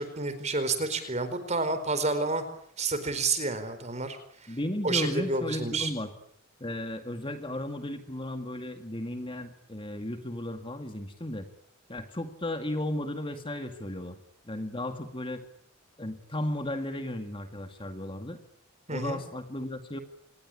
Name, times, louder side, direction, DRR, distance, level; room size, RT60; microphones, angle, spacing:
voice 1, 0.0-2.4 2.8-4.2 4.8-5.9 18.9-19.2, right 3 dB, 30° right, 11 dB, 4.4 m, -29 dB
voice 2, 4.5-6.1 6.6-11.5 11.9-14.2 14.5-15.4 16.0-18.4 18.9-20.0, left 1 dB, 25° left, 7 dB, 2.1 m, -34 dB
26.5 x 21.0 x 10.0 m, 0.66 s
head